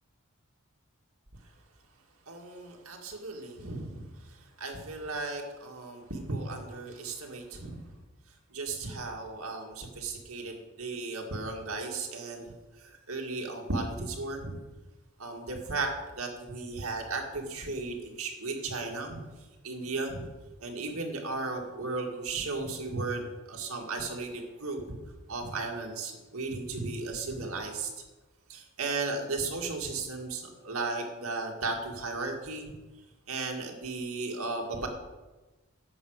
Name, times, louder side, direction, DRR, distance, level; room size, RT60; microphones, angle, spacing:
voice 1, 2.3-4.1 4.6-7.8 8.5-12.5 12.8-14.6 15.2-19.2 19.6-20.3 20.6-24.8 25.3-27.9 28.5-32.8 33.3-34.9, right 3 dB, 90° right, 2 dB, 2.2 m, -35 dB
11.0 x 7.8 x 6.6 m, 1.2 s
head